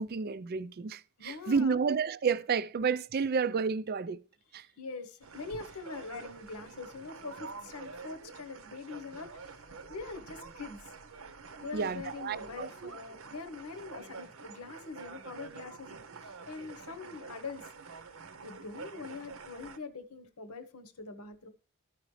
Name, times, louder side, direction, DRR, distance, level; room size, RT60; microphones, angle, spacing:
voice 1, 0.0-4.2 4.5-4.6 11.7-12.9, right 5 dB, 45° right, 0.4 m, -31 dB
voice 2, 1.2-1.8 4.8-9.6 9.9-10.9 11.6-17.6 18.4-21.5, left 4 dB, 80° left, 1.0 m, -43 dB
sound 1, 5.2-19.8, right 4 dB, 65° right, 0.8 m, -47 dB
14.0 x 5.0 x 3.2 m
head